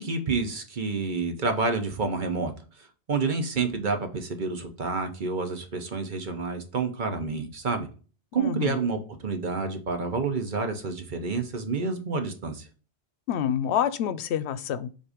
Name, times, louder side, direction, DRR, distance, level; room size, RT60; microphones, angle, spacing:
voice 1, 0.0-2.5 2.8-7.9 8.3-12.7, right 4 dB, 50° right, 6 dB, 1.0 m, -29 dB
voice 2, 8.4-8.8 13.3-15.0, left 9 dB, 85° left, 15 dB, 0.8 m, -27 dB
7.5 x 2.7 x 4.9 m, 0.37 s
omnidirectional pair, 1.1 m